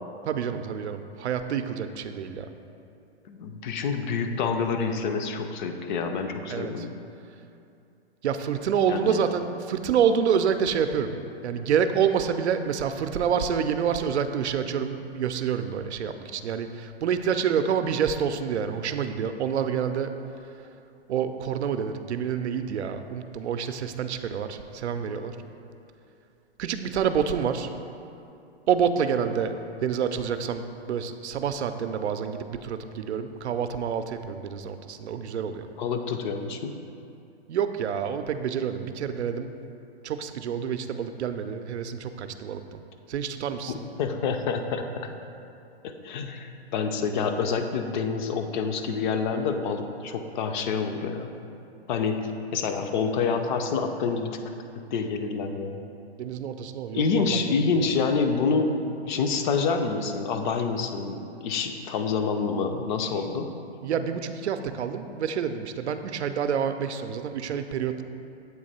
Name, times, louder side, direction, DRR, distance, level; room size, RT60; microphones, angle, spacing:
voice 1, 0.3-2.5 6.5-6.9 8.2-11.1 11.4-20.1 21.1-25.4 26.6-27.7 28.7-29.5 29.8-35.7 37.5-39.5 40.0-42.8 43.1-43.7 56.2-57.8 63.8-68.0, right 7 dB, 85° right, 9 dB, 0.5 m, -28 dB
voice 2, 3.3-6.9 8.9-9.2 35.8-36.7 43.7-45.1 45.8-51.3 51.9-52.2 52.5-54.4 54.9-55.8 56.9-63.5, left 5 dB, 45° left, 6 dB, 0.5 m, -27 dB
7.9 x 2.9 x 4.1 m, 2.6 s
hypercardioid pair, 130°, 33 cm